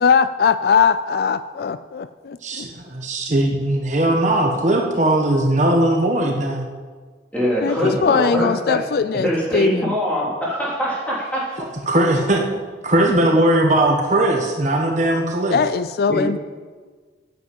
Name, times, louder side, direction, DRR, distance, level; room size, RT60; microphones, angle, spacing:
voice 1, 0.0-2.0 2.6-2.7 7.6-10.0 15.5-16.4, left 6 dB, 60° left, 13 dB, 0.3 m, -19 dB
voice 2, 2.4-6.7 7.8-7.9 11.9-12.4 12.8-15.6, right 1 dB, 40° right, 2 dB, 1.2 m, -19 dB
voice 3, 7.3-8.8 9.2-11.6 16.1-16.4, equal, 10° left, -7 dB, 3.6 m, -23 dB
9.3 x 8.2 x 7.7 m, 1.5 s
head